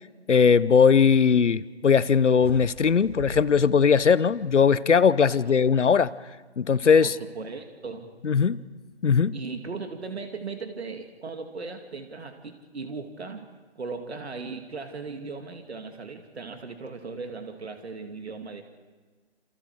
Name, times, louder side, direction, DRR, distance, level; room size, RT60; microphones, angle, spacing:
voice 1, 0.3-6.1 6.6-7.1 8.2-8.6 9.0-9.3, left 6 dB, 85° left, 18 dB, 0.9 m, -19 dB
sound 1, 2.4-4.7, right 2 dB, 50° right, 6.2 m, -41 dB
voice 2, 5.2-5.6 7.0-8.1 9.3-13.4 13.8-18.6, right 4 dB, 65° right, 5 dB, 2.4 m, -37 dB
28.0 x 27.5 x 4.9 m, 1.4 s
hypercardioid pair, 165°, 35 cm